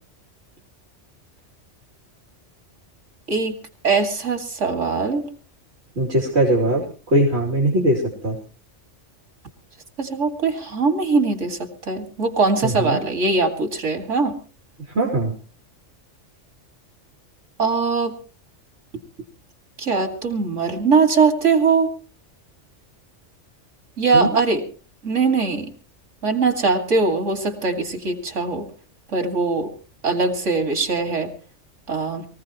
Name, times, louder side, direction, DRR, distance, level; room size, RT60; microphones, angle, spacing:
voice 1, 3.8-5.3 10.0-14.3 17.6-18.1 19.8-21.9 24.0-24.6 25.0-25.7 26.2-28.6 29.1-29.7 30.0-31.3 31.9-32.3, right 4 dB, 85° right, 6 dB, 2.6 m, -21 dB
voice 2, 6.0-6.8 7.1-8.3 12.6-13.0 14.9-15.3 24.1-24.3, right 1 dB, 60° right, -1 dB, 3.1 m, -20 dB
23.5 x 15.5 x 3.0 m, 0.38 s
omnidirectional pair, 1.2 m